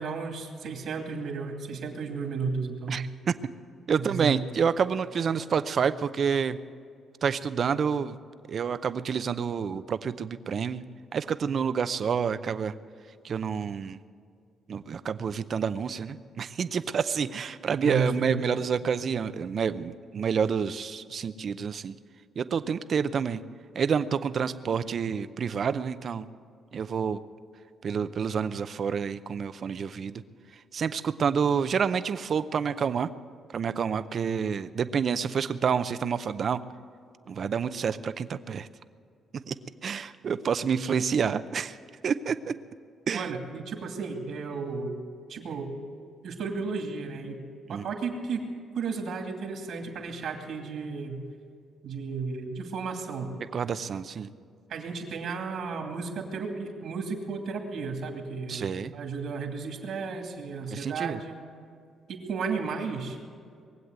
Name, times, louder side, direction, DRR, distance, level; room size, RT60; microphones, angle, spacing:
voice 1, 0.0-3.1 3.9-4.4 17.8-18.6 43.1-44.9 45.3-45.7 46.2-47.4 47.7-48.4 48.7-51.2 51.8-53.3 54.7-61.3 62.1-63.2, right 4 dB, 70° right, 3 dB, 2.5 m, -33 dB
voice 2, 2.9-3.3 3.9-6.6 7.2-8.2 8.5-10.8 11.1-12.7 13.2-14.0 14.7-22.0 22.4-23.4 23.7-26.3 26.7-27.2 27.8-30.2 30.7-33.1 33.5-36.6 37.3-38.7 39.5-39.6 39.8-41.8 42.0-42.5 43.1-43.3 47.7-47.8 53.5-54.3 58.5-58.9 60.7-61.2, right 6 dB, 50° right, 13 dB, 0.6 m, -28 dB
21.5 x 8.0 x 8.0 m, 2.2 s
cardioid pair, 90°, 0 cm